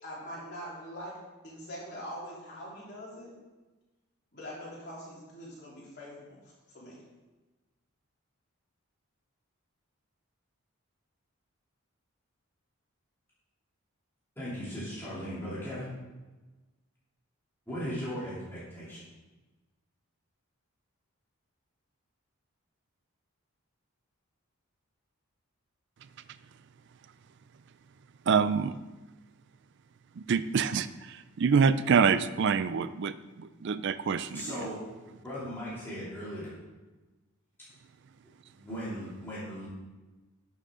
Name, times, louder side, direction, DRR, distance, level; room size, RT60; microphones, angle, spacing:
voice 1, 0.0-1.1 1.4-3.3 4.3-6.4 6.7-7.0, equal, 45° left, -7 dB, 3.4 m, -43 dB
voice 2, 14.4-15.9 17.7-19.0 34.3-34.8 35.1-36.5 38.5-39.7, equal, 10° left, -10 dB, 2.8 m, -38 dB
voice 3, 28.3-28.7 30.2-34.5, right 6 dB, 50° right, 13 dB, 0.3 m, -26 dB
11.0 x 6.6 x 3.7 m, 1.2 s
head